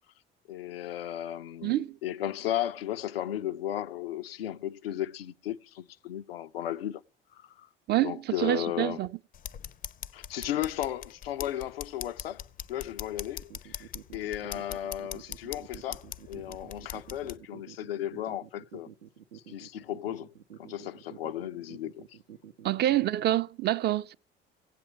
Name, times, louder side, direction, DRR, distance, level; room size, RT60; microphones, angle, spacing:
voice 1, 0.5-7.0 7.3-7.7 8.0-9.0 10.1-18.9 19.3-22.2, left 12 dB, 80° left, 0.5 m, -35 dB
voice 2, 1.6-2.0 7.9-9.1 22.6-24.1, right 13 dB, 35° right, 0.4 m, -27 dB
sound 1, 9.3-17.4, left 9 dB, 30° left, 0.5 m, -42 dB
sound 2, 13.4-23.4, right 10 dB, 85° right, 0.6 m, -49 dB
17.5 x 8.0 x 3.4 m
figure-of-eight pair, 60°, 29 cm